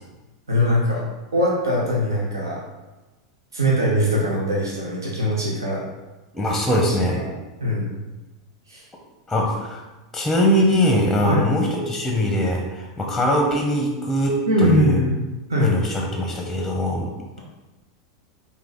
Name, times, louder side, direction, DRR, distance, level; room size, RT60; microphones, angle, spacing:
voice 1, 0.5-1.0 1.3-2.6 3.5-5.8 6.7-7.3 7.6-8.1 8.7-8.8 11.2-11.4 14.5-15.2 15.5-15.7, equal, 75° right, -3 dB, 0.9 m, -21 dB
voice 2, 6.3-7.2 9.3-9.8 10.1-15.0 15.6-17.1, equal, 5° left, 0 dB, 0.8 m, -21 dB
4.8 x 2.9 x 3.9 m, 1.1 s
figure-of-eight pair, 85°, 2 cm